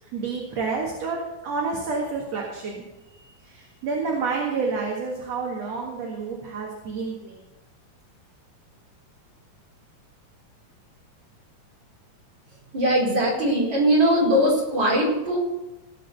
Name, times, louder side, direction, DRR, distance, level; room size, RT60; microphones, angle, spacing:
voice 1, 0.1-2.8 3.4-7.4, right 4 dB, 60° right, -2 dB, 2.9 m, -29 dB
voice 2, 12.7-15.4, equal, 35° right, -4 dB, 4.9 m, -20 dB
18.0 x 6.4 x 6.9 m, 0.97 s
omnidirectional pair, 3.5 m